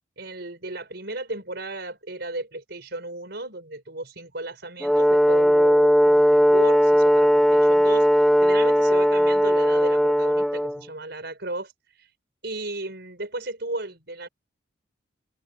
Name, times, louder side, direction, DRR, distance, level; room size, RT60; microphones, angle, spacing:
voice 1, 0.2-11.7 12.0-12.1 12.4-14.3, right 2 dB, 55° right, 5.7 m, -35 dB
Brass instrument, 4.8-10.8, equal, ahead, 2.3 m, -18 dB
open air
head